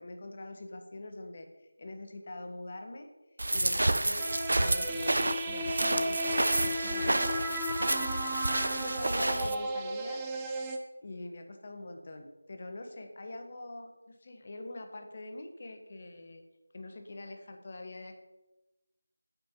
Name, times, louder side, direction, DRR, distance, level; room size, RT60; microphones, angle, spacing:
voice 1, 0.0-1.5 1.8-3.1 3.5-4.3 4.6-8.1 8.4-10.2 10.7-10.8 11.0-16.4 16.7-18.1, left 2 dB, 35° left, 5 dB, 1.2 m, -44 dB
sound 1, 3.4-9.5, right 1 dB, 60° right, 0.7 m, -30 dB
sound 2, 4.2-10.8, right 1 dB, 10° right, 0.7 m, -35 dB
8.7 x 8.0 x 5.4 m, 1.1 s
figure-of-eight pair, 165°, 0 cm